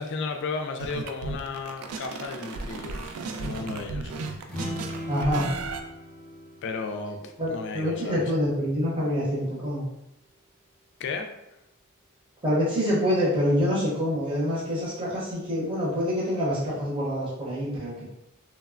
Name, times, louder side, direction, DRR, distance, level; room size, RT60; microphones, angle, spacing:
voice 1, 0.0-4.1 6.6-8.3 11.0-11.3, left 4 dB, 55° left, 5 dB, 0.3 m, -34 dB
sound 1, 0.8-5.8, right 3 dB, 85° right, 0.3 m, -35 dB
sound 2, 4.4-8.1, equal, 5° left, 0.6 m, -39 dB
voice 2, 5.1-5.5 7.4-9.8 12.4-18.0, equal, 25° right, -8 dB, 0.8 m, -26 dB
3.1 x 2.1 x 2.4 m, 0.85 s
head